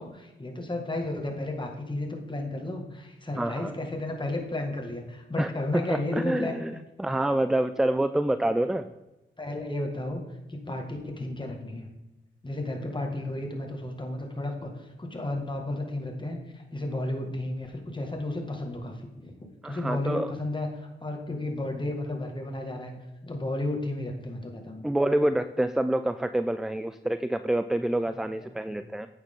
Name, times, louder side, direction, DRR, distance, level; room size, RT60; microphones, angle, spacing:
voice 1, 0.0-6.6 9.4-10.2 10.5-11.9 12.4-19.3 19.6-22.9 23.2-24.9 28.1-28.2 28.7-28.9, left 1 dB, 25° left, 2 dB, 1.8 m, -33 dB
voice 2, 3.4-3.7 5.4-5.5 5.9-6.7 7.0-8.9 19.6-20.3 24.8-29.1, right 1 dB, ahead, 11 dB, 0.3 m, -27 dB
8.8 x 6.6 x 3.7 m, 1.1 s
cardioid pair, 55°, 20 cm